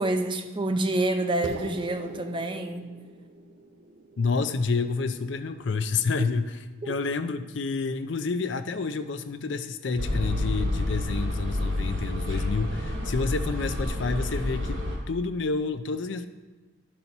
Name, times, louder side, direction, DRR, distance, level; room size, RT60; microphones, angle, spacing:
voice 1, 0.0-3.0 6.8-7.0, right 2 dB, 25° right, 6 dB, 0.6 m, -28 dB
sound 1, 1.4-6.2, right 2 dB, 65° right, 0.7 m, -43 dB
voice 2, 4.2-16.3, left 4 dB, 65° left, 10 dB, 0.5 m, -29 dB
sound 2, 10.0-15.0, left 1 dB, 85° right, 2.2 m, -29 dB
11.0 x 4.3 x 5.4 m, 1.3 s
head